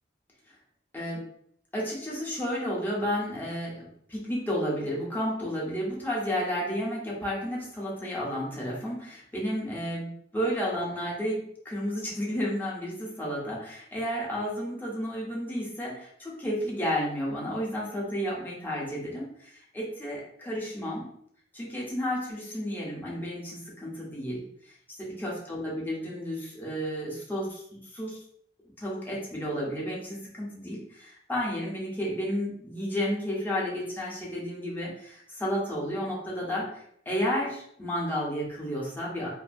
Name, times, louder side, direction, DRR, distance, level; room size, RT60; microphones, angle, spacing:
voice 1, 1.7-21.0 21.5-28.2 28.8-39.3, equal, 10° left, -5 dB, 0.8 m, -32 dB
2.6 x 2.5 x 2.5 m, 0.67 s
head